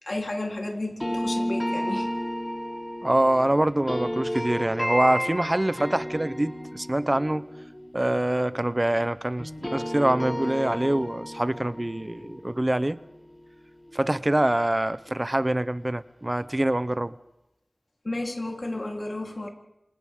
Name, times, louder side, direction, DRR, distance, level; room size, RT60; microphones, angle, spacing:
voice 1, 0.0-2.1 18.0-19.5, left 2 dB, 65° left, 3.7 m, -32 dB
sound 1, 1.0-9.1 9.4-14.3, equal, 25° left, 3.4 m, -33 dB
voice 2, 3.0-7.5 7.9-13.0 13.9-17.2, right 1 dB, 30° right, 0.7 m, -25 dB
28.0 x 27.5 x 3.8 m
wide cardioid pair, 45°, 0 cm